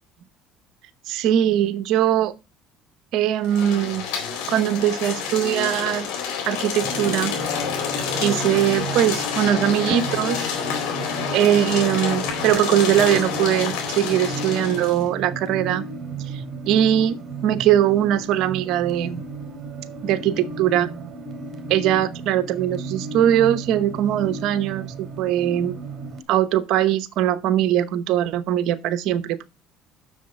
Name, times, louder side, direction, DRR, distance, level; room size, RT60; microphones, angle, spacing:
voice 1, 1.1-2.3 3.1-4.0 4.5-6.1 6.5-7.4 8.2-10.5 11.3-15.9 16.3-19.2 20.0-20.9 21.7-25.8 26.3-29.4, right 11 dB, 70° right, 0.9 m, -21 dB
sound 1, 3.4-15.0, left 7 dB, 75° left, 4.1 m, -28 dB
sound 2, 6.8-26.2, right 3 dB, 45° right, 2.8 m, -34 dB
7.4 x 6.6 x 5.3 m
supercardioid pair, 85°, 0 cm